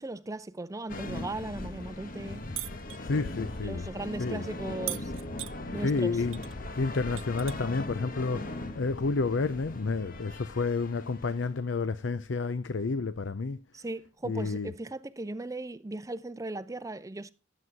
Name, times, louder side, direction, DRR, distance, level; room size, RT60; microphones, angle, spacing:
voice 1, 0.0-2.4 3.6-5.1 5.7-6.2 13.7-17.3, right 2 dB, 15° right, 0.5 m, -37 dB
sound 1, 0.9-11.6, left 2 dB, 50° left, 1.1 m, -39 dB
sound 2, 2.6-3.0 4.9-5.6 6.3-6.5 6.9-7.8 9.0-9.1, right 19 dB, 85° right, 0.5 m, -38 dB
voice 2, 3.0-3.9 4.2-4.4 5.8-6.4 6.8-13.6 14.2-14.7, left 4 dB, 70° left, 0.6 m, -30 dB
12.5 x 7.9 x 4.6 m
head